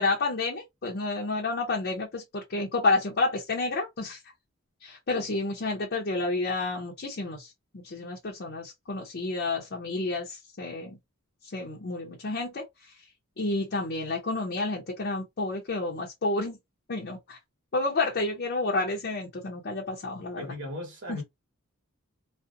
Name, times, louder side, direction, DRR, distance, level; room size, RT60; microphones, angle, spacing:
voice 1, 0.0-4.2 4.8-11.0 11.5-12.6 13.4-16.6 16.9-17.4 17.7-20.4 21.1-21.2, left 3 dB, 45° left, 0.6 m, -30 dB
voice 2, 20.3-21.2, left 1 dB, 55° right, 1.1 m, -37 dB
2.5 x 2.0 x 2.5 m
head